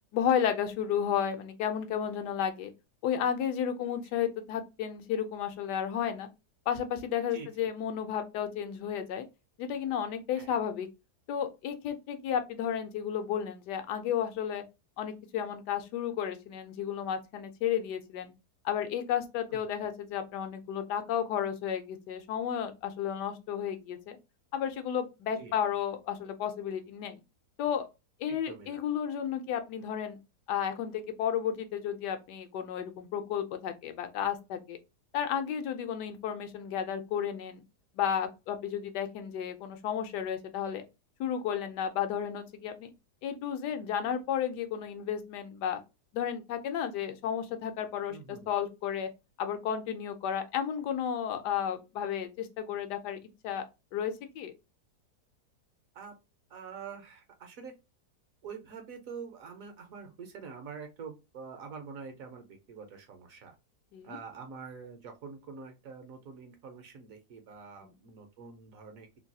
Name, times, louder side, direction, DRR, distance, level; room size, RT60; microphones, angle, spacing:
voice 1, 0.1-2.7 3.0-6.3 6.7-9.2 9.6-10.9 11.3-14.6 15.0-18.3 18.6-24.2 24.5-27.2 27.6-27.9 28.2-30.2 30.5-34.8 35.1-37.6 38.0-40.8 41.2-42.9 43.2-45.8 46.1-49.1 49.4-53.2 53.4-53.6 53.9-54.5 63.9-64.2 67.8-67.9, left 9 dB, 85° left, 1.2 m, -32 dB
voice 2, 7.3-7.7 10.3-10.6 19.5-19.9 25.4-25.6 28.3-28.8 48.1-48.5 55.9-56.2 56.5-57.7 58.4-63.5 64.0-69.1, right 5 dB, 65° right, 1.0 m, -46 dB
3.0 x 2.3 x 2.6 m
omnidirectional pair, 1.8 m